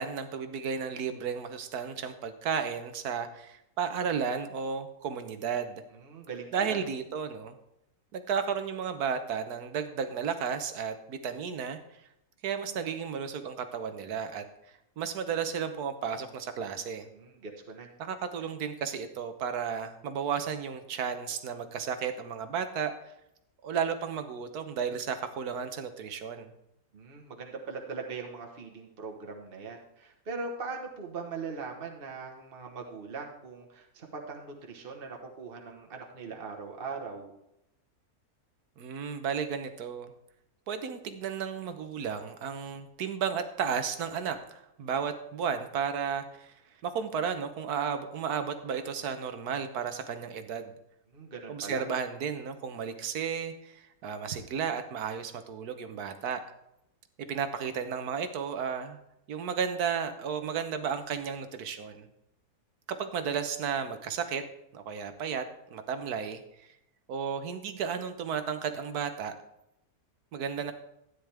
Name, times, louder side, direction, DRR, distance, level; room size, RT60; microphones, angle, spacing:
voice 1, 0.0-5.8 6.5-7.6 8.1-12.0 12.4-14.4 15.0-17.1 18.0-23.1 23.6-26.5 38.8-40.1 40.7-50.7 51.5-56.4 57.3-59.0 59.3-62.1 62.9-64.4 64.7-66.7 67.1-69.3 70.3-70.7, right 7 dB, 75° right, 9 dB, 1.5 m, -33 dB
voice 2, 5.9-6.8 17.1-17.9 26.9-37.3 51.1-51.8, right 4 dB, 40° right, 2 dB, 1.4 m, -40 dB
13.0 x 9.7 x 3.5 m, 0.82 s
omnidirectional pair, 1.6 m